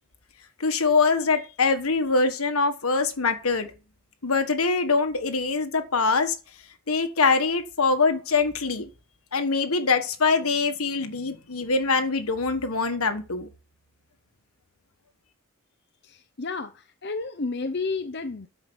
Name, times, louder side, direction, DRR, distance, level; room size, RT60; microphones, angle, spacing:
voice 1, 0.6-3.7 4.2-6.3 6.9-8.9 9.3-13.5, left 4 dB, 80° left, 1.5 m, -23 dB
voice 2, 16.0-16.7 17.0-18.5, left 3 dB, 50° left, 0.7 m, -31 dB
12.5 x 5.1 x 6.2 m
head